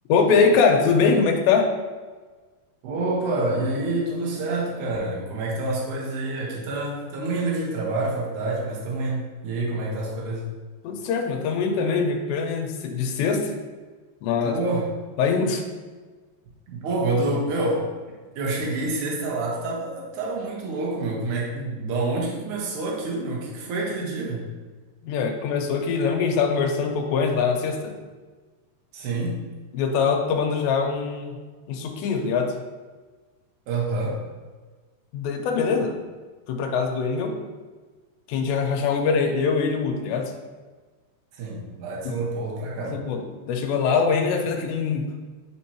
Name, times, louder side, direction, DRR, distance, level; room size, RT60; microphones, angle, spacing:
voice 1, 0.1-1.7 10.8-13.5 14.2-14.6 15.2-15.6 25.0-27.9 29.7-31.4 31.7-32.5 35.1-36.0 36.5-37.4 38.3-40.3 42.0-42.2 42.8-45.1, left 5 dB, 90° left, 3 dB, 2.9 m, -23 dB
voice 2, 2.8-10.5 14.4-14.9 16.7-17.9 18.4-24.4 28.9-29.4 33.7-34.2 41.4-43.0, right 2 dB, 65° right, -3 dB, 2.1 m, -27 dB
9.2 x 4.5 x 2.9 m, 1.4 s
omnidirectional pair, 5.0 m